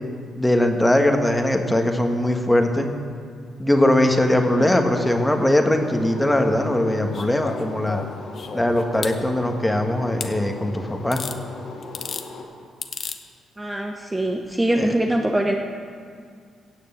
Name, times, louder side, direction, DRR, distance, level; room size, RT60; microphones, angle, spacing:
voice 1, 0.4-2.9 3.6-8.0 8.5-11.2 14.8-14.9, left 1 dB, 10° left, 4 dB, 1.5 m, -20 dB
sound 1, 4.3-12.4, left 3 dB, 65° left, 2.3 m, -39 dB
sound 2, 7.1-9.2 10.2-10.3 11.1-11.4 11.8-12.3 12.8-13.2 14.4-14.5, left 6 dB, 50° left, 0.9 m, -33 dB
voice 2, 13.6-15.5, right 1 dB, 15° right, 2 dB, 0.9 m, -23 dB
17.0 x 6.6 x 7.9 m, 2.2 s
cardioid pair, 90°, 0 cm